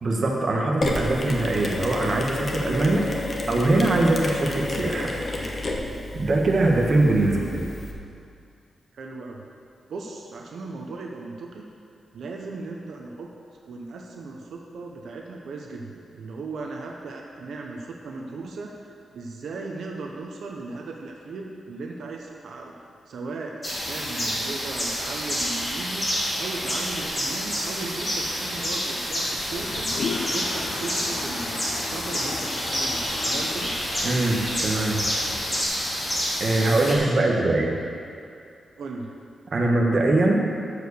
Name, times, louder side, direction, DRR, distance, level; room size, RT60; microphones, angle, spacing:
voice 1, 0.0-5.2 6.1-7.6 34.0-35.1 36.4-37.8 39.5-40.4, right 2 dB, 40° right, -1 dB, 1.3 m, -22 dB
Mechanisms, 0.8-7.9, left 2 dB, 30° left, 1.0 m, -30 dB
voice 2, 7.2-7.6 8.9-9.5 9.9-11.6 12.1-13.3 13.6-18.7 19.1-22.7 23.1-23.5 23.8-26.1 26.4-29.9 30.2-33.7 36.9-37.5 38.8-39.1, right 3 dB, 75° right, 0 dB, 1.0 m, -37 dB
sound 1, 23.6-36.9, equal, 15° left, 2.3 m, -28 dB
Toilet flush, 29.5-35.6, left 4 dB, 60° left, 0.6 m, -35 dB
13.0 x 4.9 x 6.8 m, 2.4 s
wide cardioid pair, 175°, 0 cm